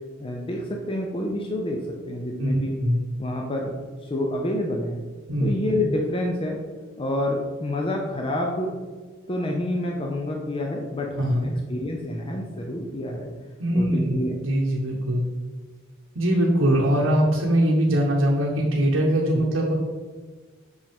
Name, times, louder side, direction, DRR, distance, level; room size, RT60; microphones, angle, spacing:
voice 1, 0.2-2.7 3.2-3.7 4.1-5.0 5.4-6.6 7.0-8.7 9.3-13.3 13.7-14.4 19.3-19.4, left 1 dB, 25° left, 0 dB, 0.5 m, -28 dB
voice 2, 2.4-3.0 5.3-5.5 11.2-11.5 13.6-14.2 14.4-15.3 16.1-19.7, equal, 70° right, -3 dB, 0.9 m, -22 dB
6.2 x 5.3 x 3.5 m, 1.4 s
head